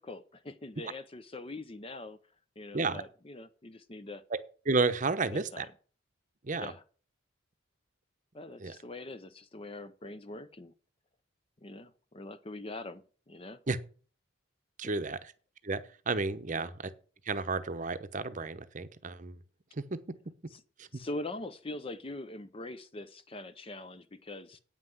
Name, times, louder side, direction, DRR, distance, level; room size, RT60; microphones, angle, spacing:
voice 1, 0.0-2.2 2.6-4.2 5.3-5.7 6.6-6.8 8.3-10.7 11.6-13.6 14.8-14.9 16.5-16.7 20.5-20.6 20.9-24.6, left 2 dB, 25° left, 11 dB, 0.6 m, -43 dB
voice 2, 4.7-5.7 6.4-6.7 8.6-8.7 13.7-13.8 14.8-15.3 15.6-16.8 17.2-19.4 19.7-19.8 20.8-20.9, right 3 dB, 40° right, 11 dB, 0.8 m, -32 dB
8.9 x 5.7 x 7.6 m, 0.39 s
head